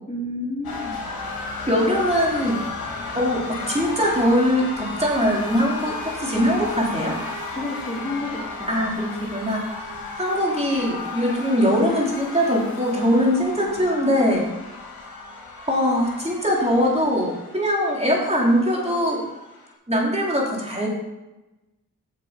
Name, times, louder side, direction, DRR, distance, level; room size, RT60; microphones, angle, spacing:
voice 1, 0.1-1.2 7.5-9.0, left 1 dB, 20° left, -5 dB, 3.3 m, -31 dB
sound 1, 0.6-19.7, left 3 dB, 75° left, 2.2 m, -34 dB
voice 2, 1.7-2.6 3.1-5.9 6.2-7.1 8.7-9.6 10.2-14.4 15.7-19.2 19.9-20.9, equal, 15° right, -3 dB, 3.7 m, -21 dB
7.9 x 6.6 x 5.3 m, 1.0 s
cardioid pair, 40°, 36 cm